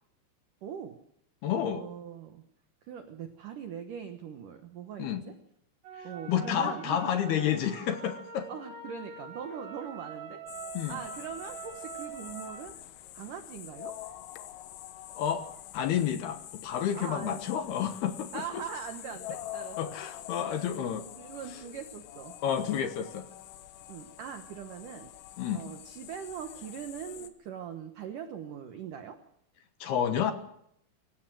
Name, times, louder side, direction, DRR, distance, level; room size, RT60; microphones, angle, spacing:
voice 1, 0.6-1.0 1.7-2.4 2.8-5.4 6.0-7.0 8.5-10.4 10.9-12.8 13.1-14.0 16.9-17.4 18.3-20.9 21.2-22.4 23.9-25.1 25.5-29.2, right 8 dB, 75° right, 7 dB, 1.9 m, -41 dB
voice 2, 1.4-1.8 5.0-5.2 6.3-8.5 10.7-11.0 15.1-15.5 15.7-18.3 19.8-21.0 22.4-23.3 25.4-25.6 29.8-30.3, left 9 dB, 65° left, 8 dB, 2.8 m, -30 dB
sound 1, 5.8-12.6, right 5 dB, 55° right, 5.9 m, -44 dB
sound 2, 10.5-27.3, left 13 dB, 90° left, 3.9 m, -46 dB
25.5 x 16.5 x 7.7 m, 0.75 s
omnidirectional pair, 5.7 m